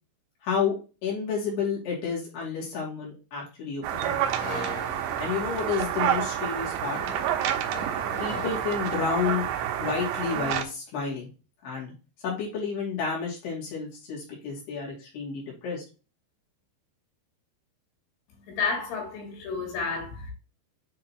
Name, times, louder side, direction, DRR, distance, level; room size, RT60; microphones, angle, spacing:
voice 1, 0.4-0.7 1.0-4.2 5.2-7.0 8.2-9.5 9.8-11.3 11.6-11.9 12.2-15.8, left 6 dB, 70° left, 4.6 m, -30 dB
sound 1, 3.8-10.6, right 10 dB, 75° right, 2.7 m, -29 dB
sound 2, 4.4-9.3, left 2 dB, 40° left, 2.9 m, -41 dB
voice 2, 18.3-20.3, left 4 dB, 85° left, 4.9 m, -31 dB
9.5 x 3.9 x 3.0 m
omnidirectional pair, 5.1 m